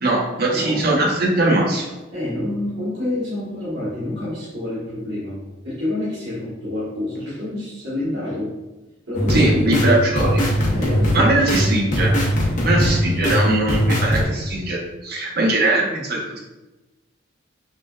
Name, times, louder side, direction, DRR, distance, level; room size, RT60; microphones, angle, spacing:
voice 1, 0.0-1.9 9.3-10.5 11.1-12.1 12.6-16.4, right 2 dB, 50° right, -2 dB, 0.8 m, -20 dB
voice 2, 0.5-0.9 2.1-5.4 5.6-8.5 9.1-10.0 10.7-11.8, left 1 dB, 65° right, -10 dB, 1.1 m, -27 dB
sound 1, 9.1-14.2, equal, 40° left, 0.7 m, -20 dB
5.9 x 2.2 x 2.3 m, 1.0 s
head